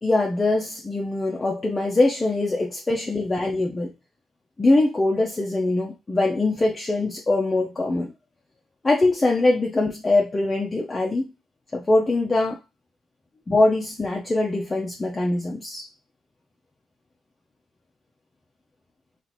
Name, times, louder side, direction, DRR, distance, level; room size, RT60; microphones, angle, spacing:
voice 1, 0.0-3.9 4.6-8.1 8.8-11.3 11.7-12.6 13.5-15.9, left 2 dB, 25° left, 0.6 m, -22 dB
2.8 x 2.5 x 4.2 m
cardioid pair, 90°, 0 cm